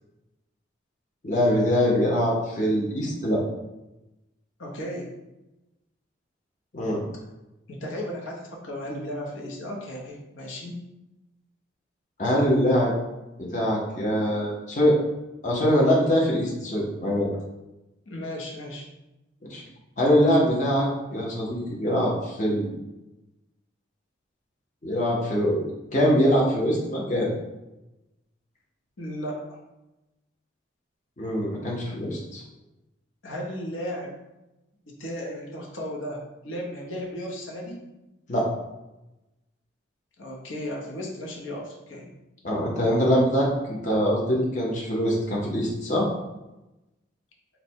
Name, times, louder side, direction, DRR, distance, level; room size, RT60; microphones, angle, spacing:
voice 1, 1.2-3.4 6.7-7.0 12.2-12.9 13.4-15.0 15.4-17.3 19.4-19.6 20.0-22.7 24.8-27.3 31.2-32.4 38.3-38.5 42.4-46.1, equal, 40° left, -4 dB, 0.8 m, -23 dB
voice 2, 4.6-5.1 7.7-10.7 18.1-18.9 29.0-29.4 33.2-34.1 34.9-37.8 40.2-42.1, equal, 80° left, -1 dB, 0.8 m, -35 dB
4.0 x 2.2 x 4.3 m, 0.98 s
head